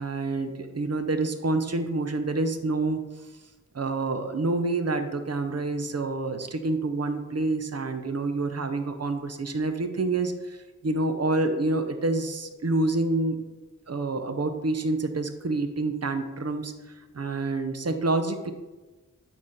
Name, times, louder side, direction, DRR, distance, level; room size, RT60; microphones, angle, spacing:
voice 1, 0.0-3.0 3.7-10.6 10.8-13.4 13.9-18.5, right 2 dB, 50° right, 7 dB, 0.8 m, -27 dB
8.5 x 4.3 x 5.0 m, 1.2 s
wide cardioid pair, 75°, 33 cm